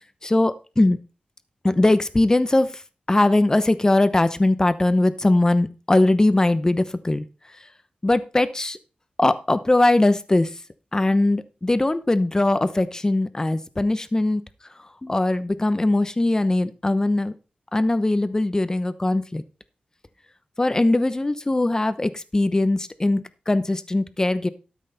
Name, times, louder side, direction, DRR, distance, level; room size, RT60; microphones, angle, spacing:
voice 1, 0.2-1.0 1.6-2.7 3.1-7.2 8.0-8.8 9.2-10.5 10.9-14.4 15.0-17.3 17.7-19.4 20.6-24.5, left 2 dB, 20° left, 13 dB, 0.8 m, -20 dB
12.5 x 6.3 x 4.1 m, 0.33 s
wide cardioid pair, 95°, 3 cm